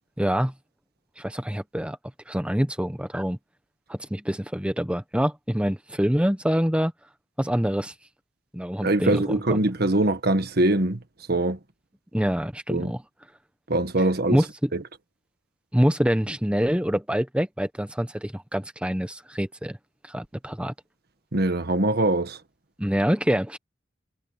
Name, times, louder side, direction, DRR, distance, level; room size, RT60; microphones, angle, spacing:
voice 1, 0.2-0.5 1.2-2.0 2.3-3.4 3.9-6.9 7.4-7.9 8.5-9.6 12.1-13.0 14.3-14.5 15.7-19.8 20.1-20.7 22.8-23.6, equal, 5° right, 1.2 m, -25 dB
voice 2, 8.8-11.0 11.3-11.6 12.7-12.9 13.7-14.4 14.7-14.8 21.3-22.4, right 2 dB, 55° right, 1.6 m, -23 dB
head